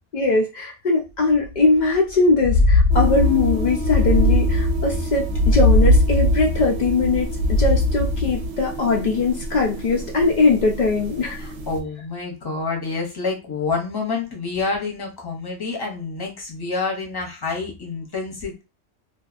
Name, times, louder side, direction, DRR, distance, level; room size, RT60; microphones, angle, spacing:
voice 1, 0.1-11.4, left 3 dB, 85° left, -1 dB, 0.4 m, -21 dB
sound 1, 1.8-1.9 2.3-8.5, left 1 dB, 70° left, 0.8 m, -19 dB
sound 2, 2.9-11.8, right 3 dB, 70° right, 0.9 m, -32 dB
voice 2, 11.4-18.6, left 4 dB, 25° left, 0 dB, 0.5 m, -28 dB
2.6 x 2.3 x 2.4 m, 0.27 s
omnidirectional pair, 1.3 m